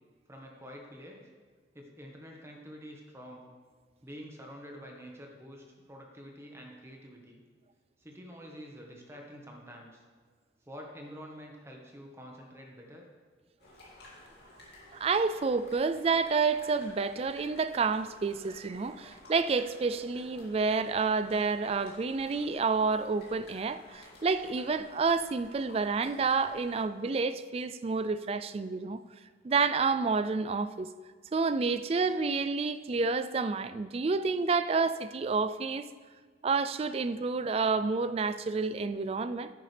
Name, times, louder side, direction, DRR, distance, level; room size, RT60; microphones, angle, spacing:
voice 1, 0.3-1.2 1.7-3.5 4.0-7.4 8.0-10.0 10.7-13.1, equal, 15° right, 1.3 m, -47 dB
sound 1, 13.6-26.8, left 1 dB, 65° left, 2.5 m, -54 dB
voice 2, 14.9-29.0 29.4-30.9 31.3-35.9 36.4-39.5, right 4 dB, 35° right, 0.3 m, -29 dB
9.6 x 9.0 x 3.4 m
head